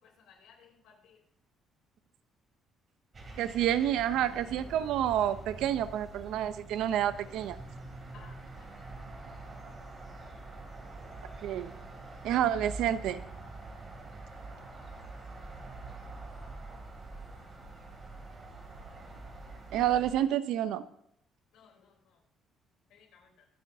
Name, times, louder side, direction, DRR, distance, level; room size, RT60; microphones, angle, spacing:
voice 1, 0.0-1.2 8.1-8.7 21.5-22.2 22.9-23.5, left 6 dB, 80° left, 0 dB, 3.7 m, -59 dB
sound 1, 3.1-20.1, right 3 dB, 30° right, 2.9 m, -45 dB
voice 2, 3.4-7.6 11.4-11.7 12.2-13.2 19.7-20.8, right 11 dB, 80° right, 13 dB, 0.7 m, -29 dB
24.0 x 9.5 x 2.8 m, 0.74 s
cardioid pair, 150°, 0 cm